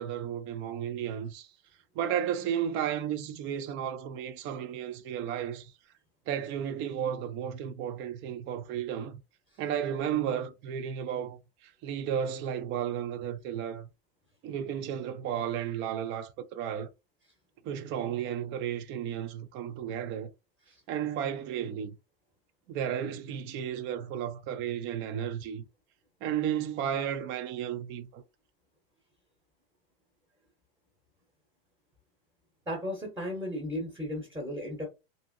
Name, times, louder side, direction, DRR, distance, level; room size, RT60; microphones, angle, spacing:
voice 1, 0.0-1.5 1.9-5.7 6.3-9.2 9.6-13.9 14.4-16.9 17.6-20.3 20.9-22.0 22.7-25.6 26.2-28.2, right 9 dB, 40° right, 0.5 m, -33 dB
voice 2, 32.7-34.9, left 1 dB, 10° right, 0.9 m, -35 dB
2.9 x 2.6 x 2.5 m
supercardioid pair, 125°, 30 cm